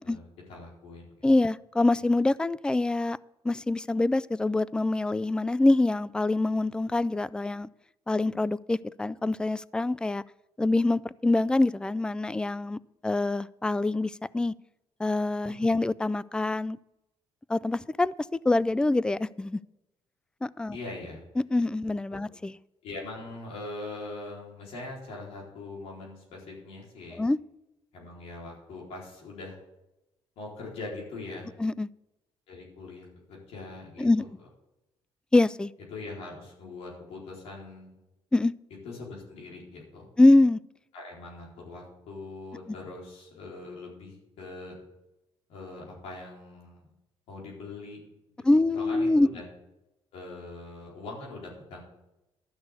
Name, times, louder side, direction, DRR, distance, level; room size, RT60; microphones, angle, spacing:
voice 1, 0.0-1.1 15.4-15.6 20.7-21.2 22.1-22.2 22.8-27.2 27.9-29.6 30.4-31.5 32.5-34.3 35.9-37.9 38.8-40.1 40.9-44.7 45.5-46.9 47.3-48.0 48.7-49.4 50.1-51.8, left 2 dB, 90° left, -3 dB, 4.3 m, -42 dB
voice 2, 1.2-3.2 3.4-7.7 8.1-10.2 10.6-14.5 15.0-16.8 17.5-18.1 18.4-19.6 20.4-20.8 21.4-22.6 27.2-27.4 31.6-31.9 34.0-34.2 35.3-35.7 38.3-38.5 40.2-40.6 48.4-49.3, left 2 dB, 10° left, 20 dB, 0.3 m, -25 dB
12.5 x 6.3 x 8.1 m, 0.93 s
cardioid pair, 110°, 10 cm